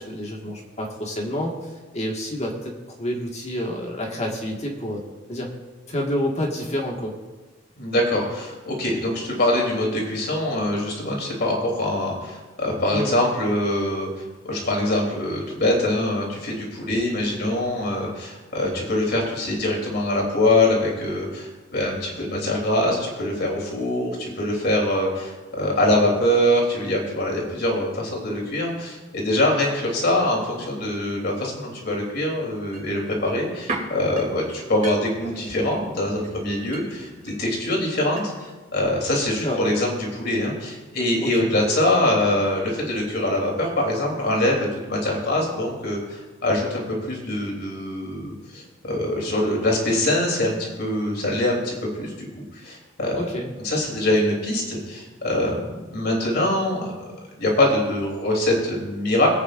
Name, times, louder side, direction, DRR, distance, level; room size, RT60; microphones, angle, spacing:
voice 1, 0.0-2.7 3.0-5.0 5.3-5.5 5.9-7.2 12.9-13.1 39.4-39.6 41.2-41.5 53.2-53.5, left 1 dB, 35° left, -1 dB, 1.7 m, -28 dB
voice 2, 7.8-14.1 14.4-52.3 52.5-53.2 53.6-57.1 57.4-59.3, left 1 dB, 55° left, -1 dB, 3.3 m, -24 dB
sound 1, 32.7-38.5 38.8-38.9, right 2 dB, 40° right, 2.9 m, -38 dB
23.0 x 8.8 x 2.6 m, 1.2 s
head